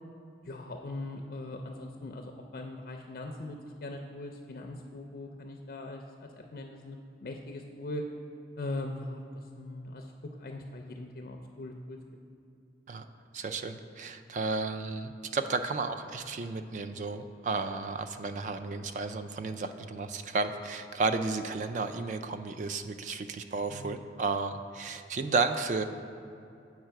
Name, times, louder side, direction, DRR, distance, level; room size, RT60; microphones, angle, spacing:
voice 1, 0.5-8.0 8.6-9.2 9.6-10.1 10.4-12.0 23.7-23.9, left 2 dB, 55° left, 3 dB, 0.4 m, -40 dB
voice 2, 13.3-25.8, right 4 dB, 45° right, 9 dB, 0.3 m, -33 dB
7.6 x 4.7 x 4.6 m, 2.6 s
head